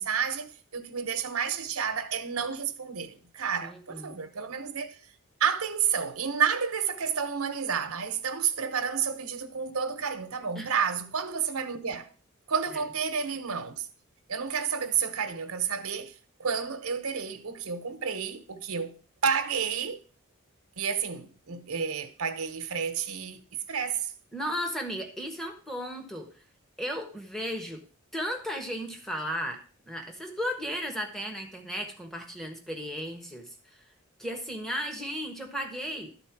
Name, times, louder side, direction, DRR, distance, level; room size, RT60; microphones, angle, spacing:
voice 1, 0.0-5.1 5.4-12.1 12.5-13.9 14.3-16.1 16.4-20.0 20.8-24.1, right 7 dB, 85° right, 1.0 m, -30 dB
voice 2, 3.6-4.2 10.5-10.7 12.7-12.8 24.3-26.3 26.8-27.8 28.1-29.6 29.8-33.8 34.2-36.1, equal, ahead, 1.2 m, -35 dB
12.0 x 4.2 x 5.9 m
head